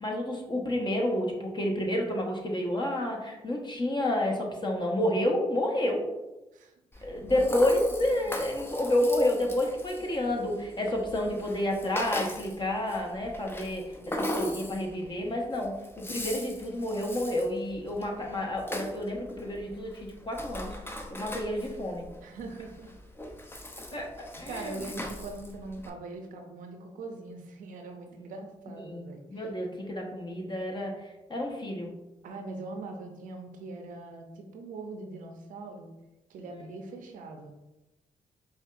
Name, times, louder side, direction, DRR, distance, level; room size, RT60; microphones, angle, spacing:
voice 1, 0.0-6.1 7.0-20.7 21.1-22.1 23.9-24.1 24.4-24.8 28.8-31.9, left 1 dB, 35° left, 0 dB, 1.1 m, -30 dB
voice 2, 6.5-7.5 8.2-8.4 22.2-22.9 23.9-24.0 24.4-29.5 32.2-35.9 36.3-37.6, right 3 dB, 70° right, 4 dB, 0.6 m, -42 dB
Rattle (instrument), 6.9-25.9, left 1 dB, 15° left, 0.7 m, -39 dB
5.0 x 2.4 x 2.5 m, 0.99 s
supercardioid pair, 50°, 14 cm